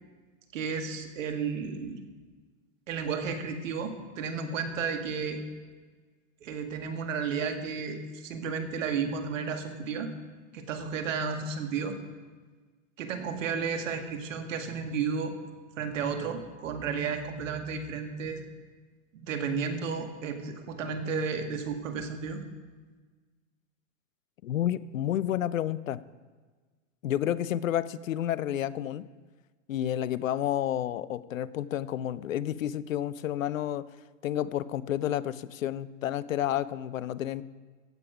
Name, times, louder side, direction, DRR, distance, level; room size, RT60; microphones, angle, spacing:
voice 1, 0.5-2.0 2.9-5.4 6.4-10.1 10.5-12.0 13.0-15.4 15.8-18.4 19.2-22.4, right 5 dB, 75° right, 6 dB, 1.9 m, -32 dB
voice 2, 24.4-26.0 27.0-29.0 29.7-33.9 34.2-37.4, left 11 dB, 90° left, 18 dB, 0.6 m, -30 dB
15.0 x 8.7 x 5.0 m, 1.4 s
hypercardioid pair, 115°, 38 cm